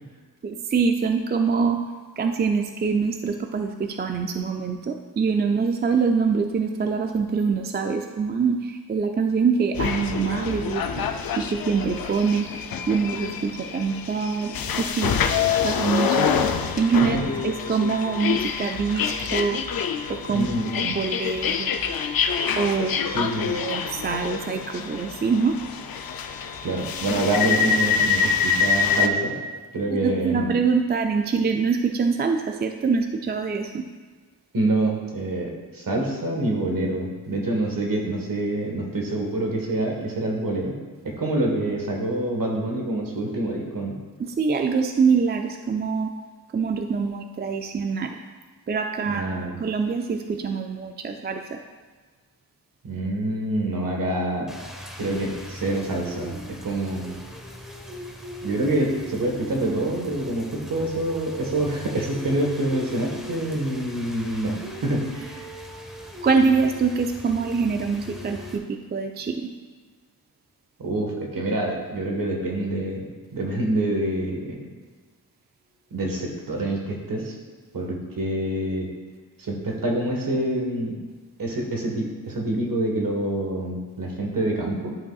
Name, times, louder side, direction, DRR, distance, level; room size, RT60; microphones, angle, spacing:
voice 1, 0.4-1.8 2.2-11.0 11.4-15.1 15.6-16.3 16.8-17.2 17.4-19.6 20.2-21.9 22.5-23.3 23.6-25.6 30.0-33.8 44.2-46.1 46.5-48.2 48.7-51.6 66.2-69.5, right 5 dB, 30° right, 5 dB, 0.3 m, -24 dB
sound 1, 9.8-29.1, left 6 dB, 65° left, 0.6 m, -26 dB
voice 2, 20.3-20.9 23.1-23.6 26.6-29.3 29.7-30.5 34.5-40.7 41.0-44.0 49.1-49.6 52.8-54.5 55.0-57.2 58.4-65.5 70.8-73.1 73.3-74.6 75.9-77.3 77.7-78.9 79.4-81.0 81.4-85.0, right 1 dB, 60° right, 0 dB, 1.5 m, -26 dB
Rain, 54.5-68.6, left 1 dB, ahead, 0.9 m, -39 dB
11.5 x 5.4 x 2.4 m, 1.4 s
wide cardioid pair, 125°, 38 cm